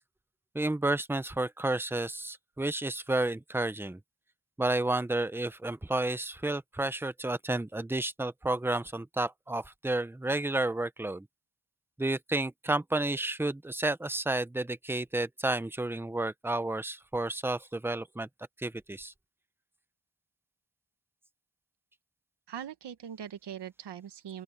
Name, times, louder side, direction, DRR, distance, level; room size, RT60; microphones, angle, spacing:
voice 1, 0.5-4.0 4.6-11.3 12.0-18.3 18.6-19.1, right 2 dB, 5° right, 0.6 m, -31 dB
voice 2, 22.5-24.4, right 9 dB, 80° right, 1.0 m, -41 dB
open air
wide cardioid pair, 160°, 40 cm